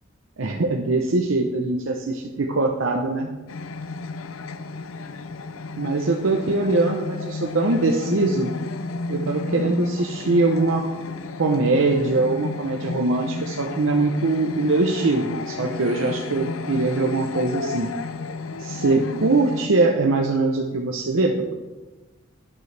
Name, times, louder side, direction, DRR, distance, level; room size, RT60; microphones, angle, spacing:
voice 1, 0.4-3.3 5.8-8.5 9.1-10.9 11.4-17.9 18.6-21.5, right 3 dB, 75° right, 1 dB, 0.8 m, -22 dB
sound 1, 3.5-19.7, left 3 dB, 85° left, 0.6 m, -32 dB
11.5 x 9.7 x 3.4 m, 1.2 s
head